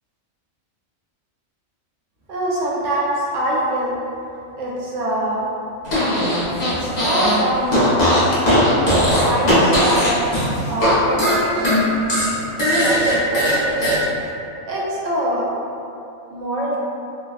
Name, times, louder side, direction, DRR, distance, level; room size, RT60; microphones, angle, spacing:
voice 1, 2.3-4.0 4.6-5.5 6.6-8.3 8.7-10.2 10.7-11.8 12.8-14.1 14.6-15.5 16.3-16.8, right 1 dB, 70° right, -5 dB, 0.9 m, -24 dB
Fart, 5.8-7.4 7.7-10.9 11.2-14.0, equal, 40° left, 0.7 m, -18 dB
3.3 x 2.1 x 2.3 m, 2.7 s
omnidirectional pair, 1.4 m